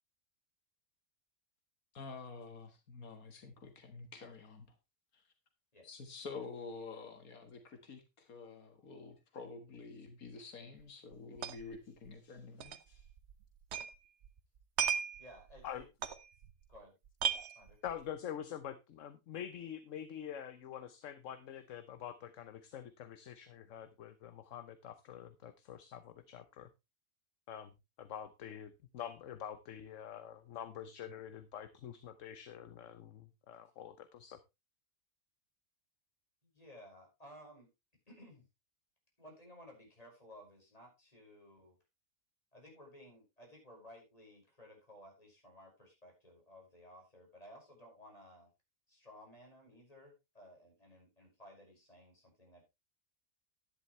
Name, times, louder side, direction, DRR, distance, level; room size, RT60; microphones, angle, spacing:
voice 1, 1.9-4.8 5.1-5.3 5.8-13.1, left 4 dB, 85° left, 2.0 m, -49 dB
sound 1, 10.8-10.9 11.1-11.8 12.1-12.2 12.6-14.0 14.2-16.8 17.1-18.1, right 8 dB, 55° right, 1.1 m, -37 dB
voice 2, 15.2-15.8 16.7-16.9 17.5-17.8 36.5-37.7 38.1-38.4 39.2-41.7 42.5-48.5 48.9-52.6, equal, 25° left, 6.0 m, -57 dB
voice 3, 17.8-26.7 27.5-27.7 28.0-34.4, left 9 dB, 65° left, 1.2 m, -46 dB
11.0 x 10.5 x 3.1 m
omnidirectional pair, 1.5 m